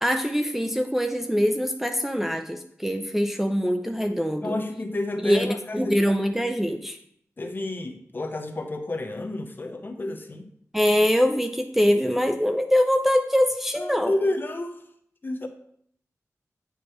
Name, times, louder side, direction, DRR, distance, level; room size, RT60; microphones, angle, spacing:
voice 1, 0.0-4.6 5.2-7.0 10.7-14.1, equal, 5° right, 5 dB, 0.4 m, -23 dB
voice 2, 4.4-6.0 7.4-10.5 13.8-14.8 15.2-15.5, left 2 dB, 40° left, 6 dB, 0.7 m, -30 dB
8.0 x 4.7 x 3.0 m, 0.66 s
wide cardioid pair, 110°, 5 cm